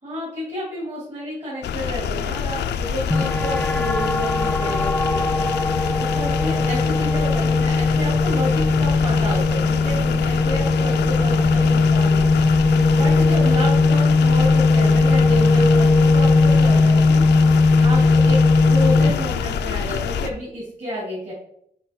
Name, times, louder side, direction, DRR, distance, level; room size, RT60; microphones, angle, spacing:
voice 1, 0.0-5.2 5.9-12.3 12.9-17.2 17.8-21.3, equal, 40° right, -7 dB, 2.8 m, -30 dB
sound 1, 1.6-20.3, left 7 dB, 80° left, 0.5 m, -26 dB
sound 2, 3.1-19.1, left 3 dB, 10° left, 0.3 m, -18 dB
6.1 x 4.1 x 4.4 m, 0.72 s
cardioid pair, 100°, 18 cm